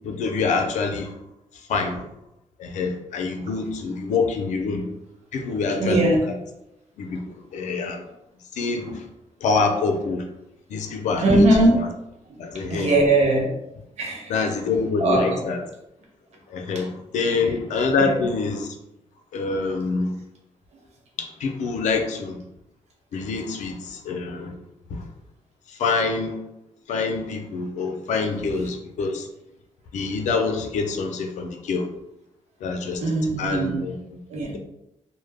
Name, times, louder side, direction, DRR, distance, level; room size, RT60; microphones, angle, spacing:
voice 1, 0.0-1.2 1.5-2.1 2.6-4.9 5.3-6.4 7.0-8.0 8.5-9.1 9.4-10.3 10.7-11.5 11.7-11.9 12.4-13.0 14.3-15.6 16.5-18.8 19.3-20.1 21.2-22.4 23.1-24.6 24.9-25.0 25.7-26.4 26.9-29.3 29.9-31.9 32.6-33.0 33.4-34.2, left 4 dB, 85° left, 4 dB, 0.4 m, -26 dB
voice 2, 5.8-6.2 8.9-9.0 11.2-11.8 12.6-13.5 14.0-14.4 15.0-15.4 16.7-16.8 17.4-17.5 18.0-18.2 28.4-28.5 33.0-33.8 34.3-34.6, right 1 dB, 65° right, -1 dB, 0.7 m, -20 dB
2.1 x 2.0 x 3.3 m, 0.87 s
wide cardioid pair, 140°, 12 cm